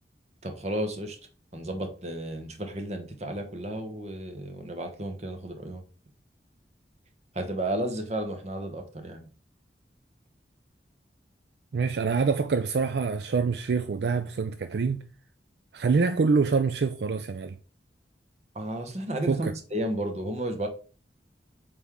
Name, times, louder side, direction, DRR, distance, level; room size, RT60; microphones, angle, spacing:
voice 1, 0.4-1.2 1.5-5.8 7.3-9.3 18.5-20.7, right 1 dB, 40° right, 1.1 m, -33 dB
voice 2, 11.7-15.0 15.7-17.6 19.3-19.5, right 5 dB, 70° right, 0.4 m, -25 dB
8.0 x 3.5 x 3.6 m
head